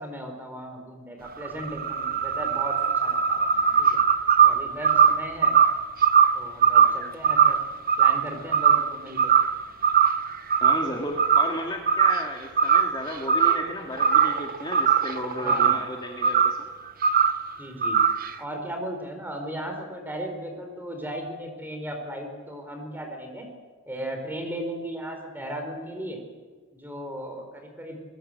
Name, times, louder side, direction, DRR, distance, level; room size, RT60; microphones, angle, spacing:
voice 1, 0.0-4.0 4.4-5.6 6.3-7.6 8.0-9.3 15.4-15.8 17.6-18.0 18.4-23.4 23.9-26.2 26.7-28.0, right 1 dB, 10° right, 4 dB, 4.5 m, -36 dB
sound 1, 1.3-8.9 9.2-9.6 9.8-10.9 11.2-11.5 11.9-12.3 12.6-13.7 14.0-15.9 16.2-16.6 17.0-17.4 17.8-18.3, right 7 dB, 45° right, 0.9 m, -20 dB
voice 2, 10.6-16.7, left 1 dB, 20° left, 0 dB, 2.2 m, -33 dB
23.0 x 20.5 x 7.8 m, 1.5 s
head